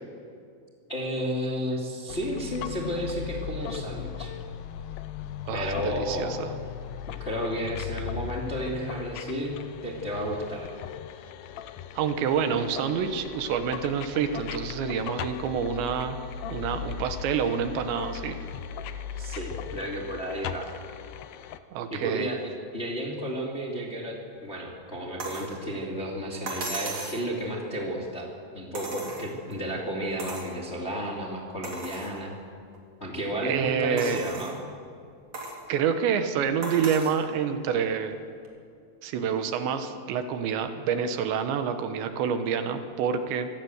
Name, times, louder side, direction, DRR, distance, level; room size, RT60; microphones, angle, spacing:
voice 1, 0.9-4.3 5.5-6.4 7.2-9.6 9.8-10.7 19.2-20.7 21.9-28.3 28.5-32.3 33.0-34.6, equal, 20° left, -2 dB, 1.9 m, -32 dB
sound 1, 2.1-21.6, left 9 dB, 85° left, 2.1 m, -38 dB
voice 2, 5.5-6.5 12.0-16.2 16.5-18.4 21.7-22.3 33.4-34.2 35.7-38.1 39.0-43.5, right 7 dB, 75° right, 8 dB, 3.3 m, -27 dB
sound 2, 25.2-25.5 26.5-27.3 28.7-29.5 30.2-30.5 31.0-31.1 31.6-32.1 32.7-32.8 34.0-34.6 35.3-35.6 36.6-37.2 38.5-38.6, right 2 dB, 40° right, 3.6 m, -36 dB
26.0 x 16.5 x 8.0 m, 2.4 s
omnidirectional pair, 5.3 m